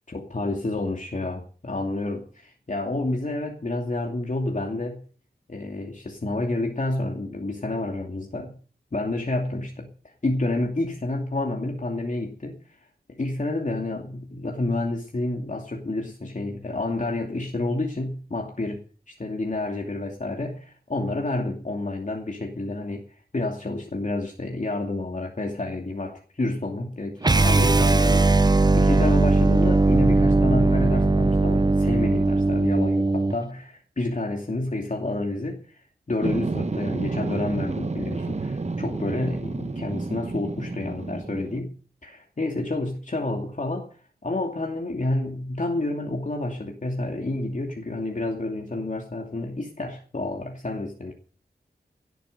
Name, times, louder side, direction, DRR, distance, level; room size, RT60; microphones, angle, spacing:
voice 1, 0.1-5.0 5.5-8.6 8.9-9.9 10.2-41.7 42.0-43.9 44.2-51.1, left 2 dB, 45° left, 1 dB, 2.6 m, -29 dB
sound 1, 27.2-33.4, right 2 dB, 25° right, 0.6 m, -19 dB
sound 2, 36.2-41.6, right 3 dB, 40° right, 1.1 m, -30 dB
17.5 x 9.2 x 6.7 m, 0.41 s
wide cardioid pair, 85°, 18 cm